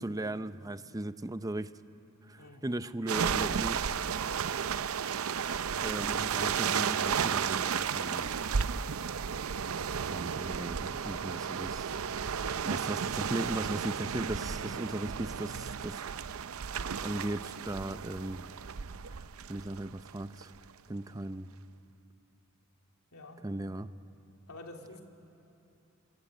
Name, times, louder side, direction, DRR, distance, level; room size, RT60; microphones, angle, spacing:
voice 1, 0.0-1.7 2.3-3.8 5.8-8.3 10.1-12.0 12.3-16.0 16.6-18.5 19.5-20.5 20.9-21.5 23.4-23.9, right 1 dB, 15° right, 12 dB, 0.6 m, -37 dB
sound 1, 3.1-20.6, right 7 dB, 70° right, 0.6 m, -33 dB
voice 2, 12.4-12.8 23.1-23.4 24.5-25.0, left 2 dB, 90° left, 2 dB, 3.1 m, -48 dB
27.5 x 22.5 x 9.0 m, 2.8 s
head